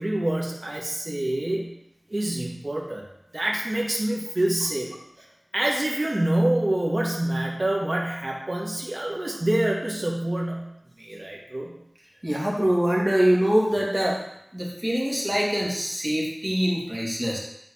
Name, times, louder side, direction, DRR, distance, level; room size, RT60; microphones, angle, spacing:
voice 1, 0.0-1.7 2.1-3.1 3.3-4.9 5.5-10.7 11.0-11.7, right 1 dB, 50° right, -2 dB, 1.5 m, -26 dB
voice 2, 12.2-14.2 14.5-17.4, equal, 25° right, -3 dB, 2.5 m, -24 dB
9.6 x 4.0 x 5.6 m, 0.77 s
wide cardioid pair, 50°, 0 cm